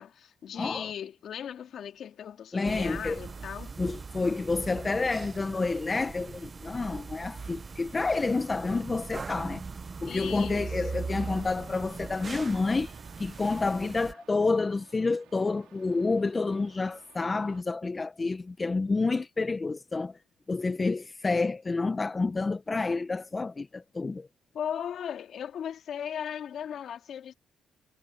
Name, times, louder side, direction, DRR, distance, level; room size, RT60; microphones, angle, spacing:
voice 1, 0.0-3.8 10.0-11.1 24.5-27.3, left 9 dB, 65° left, 2.7 m, -37 dB
voice 2, 0.6-0.9 2.5-3.2 3.8-9.6 10.0-20.2 20.5-24.3, left 3 dB, 30° left, 1.1 m, -29 dB
sound 1, 2.6-14.1, right 4 dB, 35° right, 0.6 m, -40 dB
sound 2, 11.2-17.6, right 13 dB, 80° right, 4.0 m, -57 dB
supercardioid pair, 70°, 0 cm